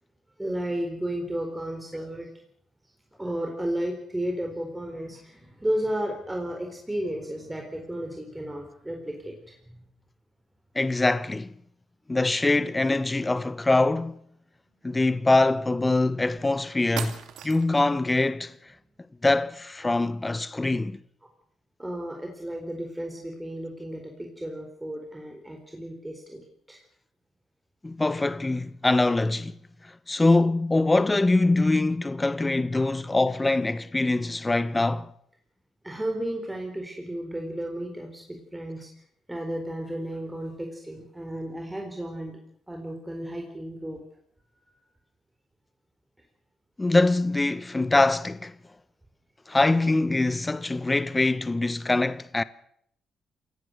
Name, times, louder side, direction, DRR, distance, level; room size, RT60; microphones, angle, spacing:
voice 1, 0.4-2.3 3.2-9.8 21.8-26.8 32.7-32.8 35.8-38.9 39.3-42.4 42.7-44.0 44.7-44.8, right 1 dB, 10° right, 4.3 m, -33 dB
voice 2, 10.7-11.5 12.1-14.2 14.8-18.6 19.2-21.0 27.8-29.5 29.8-35.1 46.8-48.5 49.5-52.4, left 2 dB, 15° left, 0.9 m, -23 dB
sound 1, 16.4-16.5 17.0-17.9, right 9 dB, 80° right, 2.5 m, -37 dB
27.5 x 17.5 x 6.5 m
cardioid pair, 90°, 0 cm